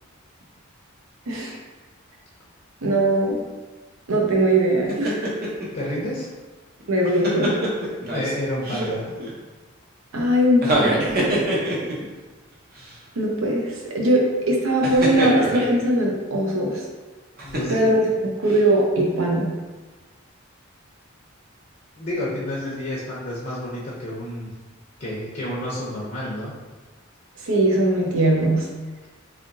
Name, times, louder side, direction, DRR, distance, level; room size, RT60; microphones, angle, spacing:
voice 1, 1.3-1.6 2.8-3.4 4.1-5.3 6.9-7.5 10.1-11.4 13.2-16.8 17.7-19.5 27.4-28.7, right 1 dB, 80° right, -2 dB, 0.8 m, -20 dB
sound 1, 4.9-5.7 6.8-8.3 8.6-9.3 10.5-12.1 12.8-12.9 14.8-15.8 17.4-18.0 18.5-18.6, right 1 dB, 50° right, 0.8 m, -24 dB
voice 2, 5.7-6.3 8.1-9.1 17.4-17.8 22.0-24.5 25.0-26.5, left 1 dB, 40° left, -5 dB, 0.7 m, -30 dB
3.6 x 3.5 x 2.6 m, 1.3 s
head